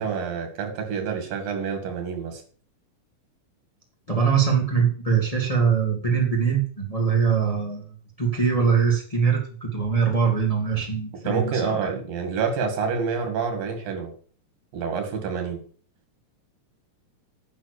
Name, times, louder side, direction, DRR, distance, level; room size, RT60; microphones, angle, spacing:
voice 1, 0.0-2.4 11.2-14.1 14.7-15.6, right 5 dB, 90° right, 6 dB, 3.9 m, -28 dB
voice 2, 4.1-11.8, right 6 dB, 15° left, -1 dB, 1.6 m, -22 dB
9.7 x 6.6 x 6.7 m, 0.42 s
omnidirectional pair, 3.9 m